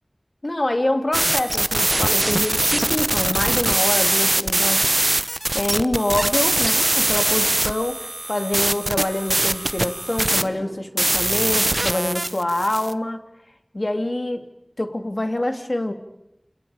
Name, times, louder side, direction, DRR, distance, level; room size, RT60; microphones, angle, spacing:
voice 1, 0.4-4.9 5.5-13.2 13.7-14.5 14.8-15.9, left 1 dB, 55° left, 7 dB, 2.7 m, -25 dB
sound 1, 1.1-12.9, right 1 dB, 50° right, 0.9 m, -22 dB
29.0 x 28.0 x 5.0 m, 0.87 s
wide cardioid pair, 40°, 0 cm